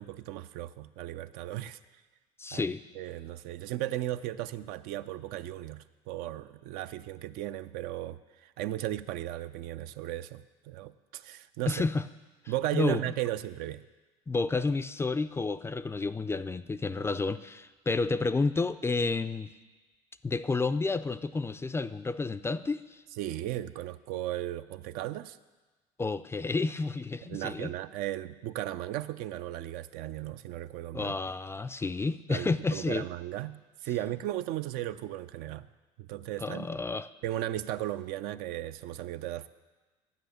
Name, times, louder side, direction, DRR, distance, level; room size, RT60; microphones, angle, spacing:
voice 1, 0.0-1.8 2.5-2.6 2.9-11.8 12.5-13.8 23.2-25.4 27.3-31.2 32.3-35.7 36.0-36.7 37.2-39.5, right 14 dB, 70° right, 12 dB, 0.4 m, -36 dB
voice 2, 2.4-2.8 11.7-12.1 12.7-13.0 14.3-19.5 20.2-23.0 26.0-27.7 30.9-33.1 36.4-37.1, left 3 dB, 15° left, 13 dB, 0.3 m, -30 dB
9.2 x 6.8 x 6.5 m, 1.3 s
supercardioid pair, 85°, 16 cm